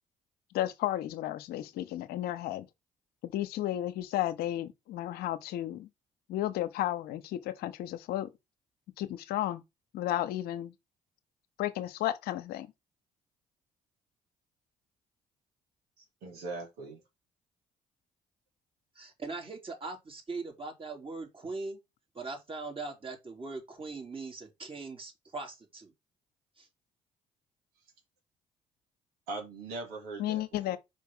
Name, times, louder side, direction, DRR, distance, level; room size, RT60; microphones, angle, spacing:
voice 1, 0.5-2.7 3.2-5.9 6.3-8.3 9.0-9.6 9.9-10.7 11.6-12.7 30.2-30.8, left 13 dB, 75° left, 0.8 m, -33 dB
voice 2, 16.2-17.0 29.3-30.4 30.7-30.8, right 3 dB, 80° right, 2.4 m, -40 dB
voice 3, 18.9-21.8 22.1-25.9 26.6-26.7, right 3 dB, 35° right, 3.2 m, -40 dB
5.1 x 4.6 x 5.4 m
hypercardioid pair, 55°, 16 cm